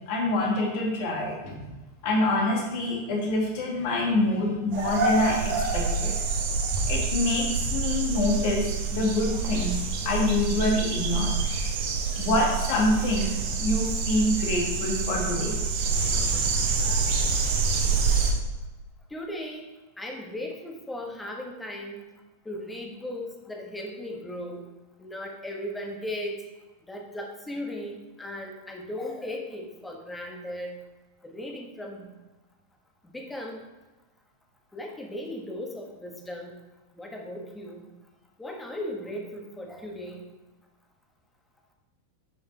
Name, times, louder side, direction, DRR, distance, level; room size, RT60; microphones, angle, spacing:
voice 1, 0.1-1.7 2.0-6.1 6.9-11.3 12.2-13.3 13.6-15.5 16.1-16.3, left 2 dB, 45° left, -1 dB, 2.1 m, -26 dB
sound 1, 4.7-18.3, right 4 dB, 50° right, 1.3 m, -27 dB
voice 2, 19.1-19.6 20.0-22.0 22.4-24.7 25.0-26.4 26.9-30.8 31.2-32.1 33.1-33.6 34.7-36.6 36.9-37.9 38.4-40.3, left 1 dB, 10° left, 2 dB, 1.4 m, -37 dB
10.5 x 5.5 x 3.4 m, 1.1 s
figure-of-eight pair, 90°, 0 cm